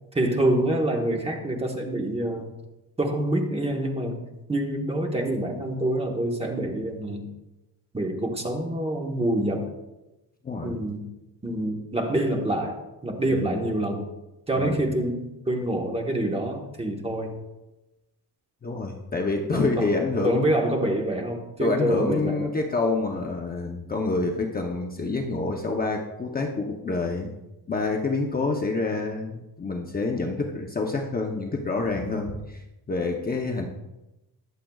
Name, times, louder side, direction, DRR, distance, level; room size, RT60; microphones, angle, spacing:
voice 1, 0.1-2.5 3.0-7.3 7.9-9.7 10.6-11.1 11.4-14.1 14.5-17.4 19.5-19.9 20.2-22.5 28.4-28.5 33.4-33.7, right 1 dB, 15° right, 1 dB, 1.2 m, -26 dB
voice 2, 10.4-10.7 13.3-13.6 14.6-14.9 18.6-20.5 21.6-27.3 27.7-32.6 32.9-33.7, left 3 dB, 25° left, 1 dB, 0.7 m, -27 dB
20.5 x 7.5 x 2.3 m, 0.99 s
wide cardioid pair, 170°, 40 cm